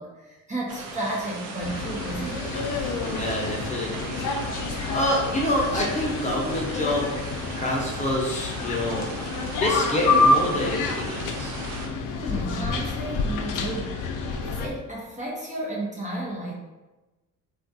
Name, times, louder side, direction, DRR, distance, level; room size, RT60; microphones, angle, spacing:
voice 1, 0.0-2.5 12.0-14.0 14.3-16.5, right 1 dB, 20° right, -4 dB, 0.6 m, -33 dB
sound 1, 0.7-11.9, right 4 dB, 85° right, 0.6 m, -38 dB
sound 2, 1.6-14.7, left 3 dB, 65° left, 0.5 m, -28 dB
voice 2, 3.0-4.2 4.9-7.1 7.6-9.1 9.6-11.6, left 1 dB, 20° left, -3 dB, 0.7 m, -27 dB
3.3 x 2.3 x 2.6 m, 1.1 s
cardioid pair, 105°, 34 cm